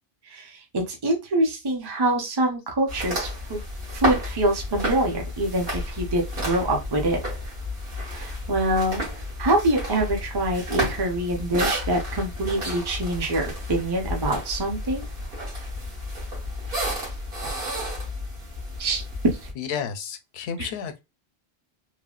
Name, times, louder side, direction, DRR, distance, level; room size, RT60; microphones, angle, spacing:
voice 1, 0.3-3.6 3.9-7.2 8.0-9.0 9.4-15.0 18.8-19.0 19.4-19.5 20.6-20.7, right 1 dB, 30° right, 0.6 m, -25 dB
sound 1, 2.9-19.5, equal, 65° right, 1.4 m, -31 dB
voice 2, 19.6-21.0, left 7 dB, 90° left, 0.8 m, -31 dB
3.3 x 2.1 x 2.3 m
omnidirectional pair, 1.0 m